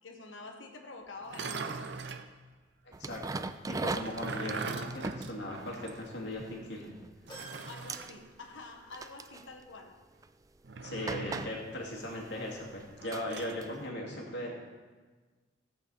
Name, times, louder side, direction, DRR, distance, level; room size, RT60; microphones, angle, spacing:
voice 1, 0.0-1.8 7.7-10.0, left 3 dB, 90° left, 4 dB, 1.4 m, -47 dB
sound 1, 1.2-2.3 3.8-6.1 6.4-6.5 7.3-8.2 10.6-11.6 13.0-13.6, right 4 dB, 60° right, 0.6 m, -41 dB
sound 2, 2.9-7.1 7.4-7.6 7.9-8.1 8.9-9.5 10.2-10.3 11.1-13.9, right 3 dB, 20° right, 0.3 m, -40 dB
voice 2, 3.0-6.9 10.8-14.5, left 1 dB, 65° left, -2 dB, 2.4 m, -38 dB
sound 3, 7.3-8.9 9.3-9.4 10.7-10.8, right 1 dB, 25° left, 2.2 m, -52 dB
16.0 x 8.5 x 4.1 m, 1.4 s
head